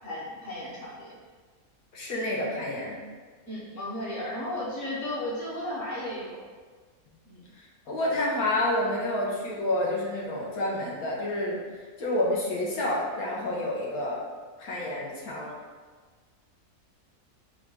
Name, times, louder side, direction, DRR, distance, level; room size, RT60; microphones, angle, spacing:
voice 1, 0.0-1.1 3.5-6.4 7.2-7.4, left 1 dB, 55° left, -7 dB, 1.5 m, -34 dB
voice 2, 1.9-3.0 7.6-11.6 12.0-14.2 14.6-15.5, left 1 dB, 85° left, -3 dB, 1.4 m, -29 dB
4.1 x 2.4 x 4.6 m, 1.5 s
omnidirectional pair, 1.5 m